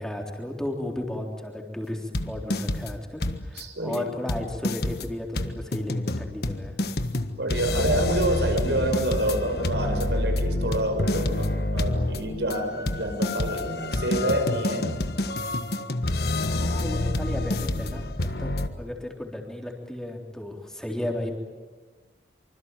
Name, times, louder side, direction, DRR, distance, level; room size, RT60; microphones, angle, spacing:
voice 1, 0.0-6.8 16.5-21.3, left 1 dB, 5° left, 1 dB, 3.6 m, -34 dB
sound 1, 2.1-2.9 3.2-3.6 3.9-4.0 4.3-18.7, left 1 dB, 65° left, 1.5 m, -28 dB
voice 2, 3.5-4.1 7.4-14.9, right 1 dB, 80° right, 6 dB, 5.6 m, -27 dB
25.5 x 25.5 x 9.1 m, 1.3 s
head